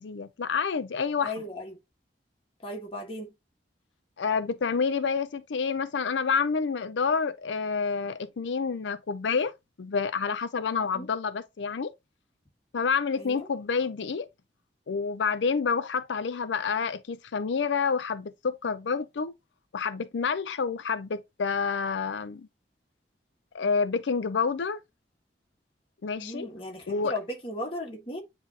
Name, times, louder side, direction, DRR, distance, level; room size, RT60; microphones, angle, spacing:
voice 1, 0.0-1.3 4.2-9.5 9.8-11.9 12.7-14.3 14.9-19.3 19.7-22.5 23.5-24.8 26.0-26.5 26.9-27.1, left 5 dB, 85° left, 0.5 m, -28 dB
voice 2, 1.2-1.8 2.6-3.3 10.9-11.1 13.2-13.5 26.2-28.2, left 1 dB, 30° left, 1.7 m, -36 dB
9.3 x 3.4 x 3.0 m
head